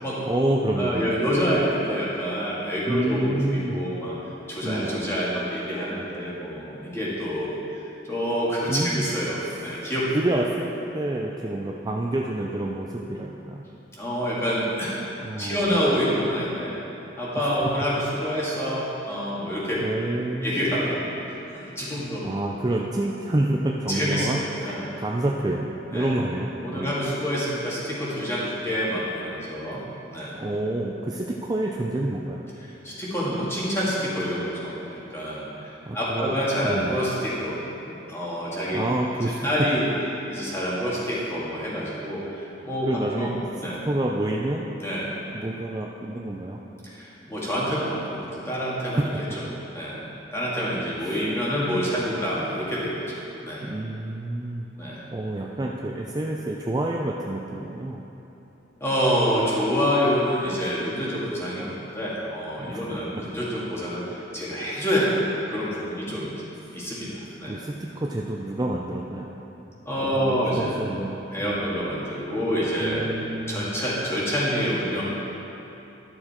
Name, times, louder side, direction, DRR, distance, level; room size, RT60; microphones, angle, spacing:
voice 1, 0.3-1.1 2.9-3.9 4.6-5.2 8.7-9.1 10.1-13.7 15.2-15.7 17.3-17.6 19.8-20.6 22.2-27.0 30.4-32.4 35.9-36.4 36.6-37.0 38.7-39.4 42.8-44.7 45.3-46.6 51.1-51.2 53.6-54.7 55.1-58.0 62.6-62.8 67.5-69.3 70.0-71.7 72.8-73.7, right 1 dB, 20° right, -1 dB, 0.4 m, -28 dB
voice 2, 0.8-4.2 4.5-7.6 8.0-10.1 14.0-15.0 15.4-16.7 17.2-19.8 20.4-21.2 21.5-22.4 23.9-24.9 25.9-26.1 26.6-29.8 30.1-30.4 32.8-37.6 37.9-38.8 39.2-39.9 40.3-42.9 43.2-43.8 44.8-45.1 46.8-49.1 49.7-50.1 50.3-53.6 54.8-55.0 58.8-66.3 66.7-67.6 69.9-70.8 71.3-73.1 73.5-75.0, equal, 15° left, -7 dB, 2.0 m, -27 dB
12.0 x 6.7 x 4.3 m, 3.0 s
head